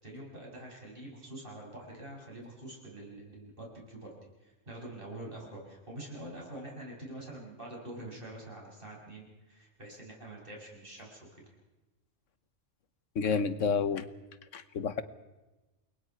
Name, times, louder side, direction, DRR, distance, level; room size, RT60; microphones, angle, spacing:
voice 1, 0.0-4.1 4.4-11.4, right 1 dB, 45° right, -2 dB, 7.5 m, -45 dB
voice 2, 13.1-14.1 14.5-15.0, left 5 dB, 80° left, 13 dB, 1.4 m, -29 dB
29.0 x 22.0 x 4.7 m, 1.1 s
omnidirectional pair, 1.3 m